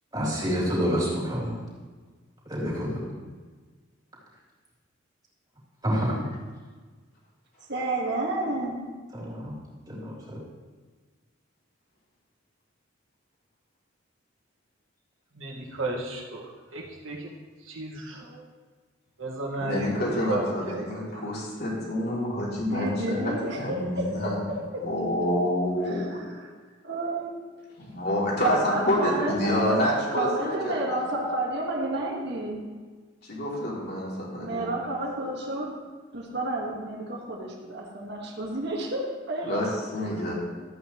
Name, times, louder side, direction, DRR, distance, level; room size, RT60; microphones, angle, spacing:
voice 1, 0.1-1.6 2.5-3.1 5.8-6.2 9.2-9.5 9.9-10.4, equal, 20° right, -7 dB, 3.5 m, -28 dB
voice 2, 7.7-8.8 22.7-24.9 25.8-26.5 26.8-27.3 28.4-32.6 34.4-35.7 36.1-40.2, right 2 dB, 60° right, -3 dB, 1.8 m, -30 dB
voice 3, 15.3-17.3 17.6-18.5 19.2-21.4, right 2 dB, 85° right, -2 dB, 1.9 m, -35 dB
voice 4, 19.6-24.4 24.8-26.2 27.8-30.8 33.2-34.7 39.4-39.6 39.9-40.3, left 1 dB, 55° left, -5 dB, 3.2 m, -28 dB
14.0 x 8.7 x 3.2 m, 1.4 s
head